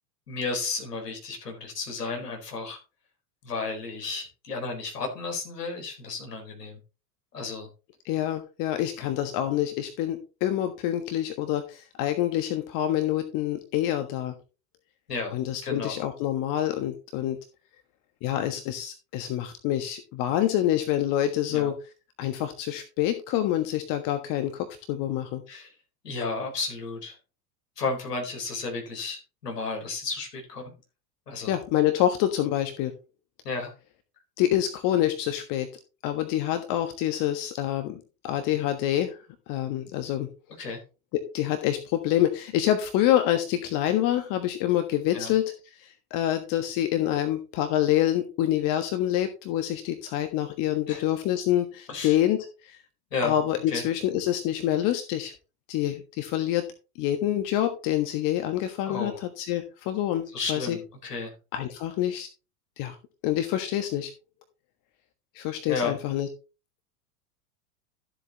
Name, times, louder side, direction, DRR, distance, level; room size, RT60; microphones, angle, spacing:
voice 1, 0.3-2.8 3.4-6.8 7.3-7.7 9.0-9.1 15.1-15.4 15.6-16.0 21.5-21.7 25.5-25.7 26.0-27.2 27.8-30.7 31.3-31.6 33.4-33.7 40.6-40.8 45.1-45.3 50.9-51.0 51.9-52.2 53.1-53.4 53.7-53.9 58.9-59.2 60.3-61.3 65.7-66.0, left 4 dB, 75° left, 1 dB, 4.3 m, -33 dB
voice 2, 8.0-14.3 15.3-17.4 18.2-21.7 22.2-25.4 31.4-32.9 34.4-35.7 36.0-38.0 38.2-39.2 39.5-40.3 41.1-45.5 46.1-52.4 52.7-52.8 53.2-55.3 55.7-56.6 57.0-60.8 61.5-62.3 62.8-62.9 63.2-64.1 65.3-66.3, left 12 dB, 40° left, 7 dB, 1.5 m, -26 dB
13.0 x 7.8 x 3.0 m, 0.32 s
figure-of-eight pair, 90°, 48 cm